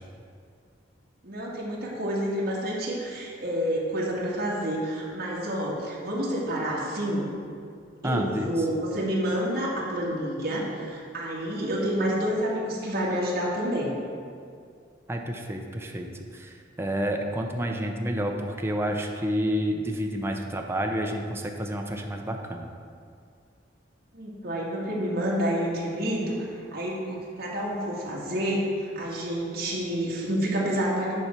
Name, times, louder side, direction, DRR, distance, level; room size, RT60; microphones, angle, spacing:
voice 1, 1.2-7.3 8.0-13.9 24.1-26.4 26.7-31.1, equal, 55° right, -5 dB, 1.9 m, -29 dB
voice 2, 8.0-8.5 15.1-16.1 16.3-22.7, equal, 15° right, 2 dB, 0.7 m, -29 dB
10.0 x 4.4 x 5.9 m, 2.3 s
head